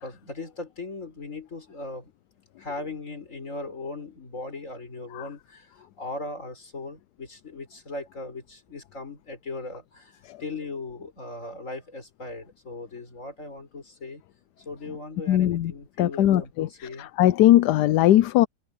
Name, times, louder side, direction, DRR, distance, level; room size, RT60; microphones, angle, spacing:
voice 1, 0.0-2.1 2.6-14.2 14.6-17.1, left 3 dB, 50° left, 5.0 m, -38 dB
voice 2, 15.3-15.7 16.0-16.7 17.2-18.5, left 13 dB, 85° left, 1.2 m, -19 dB
omnidirectional pair, 1.7 m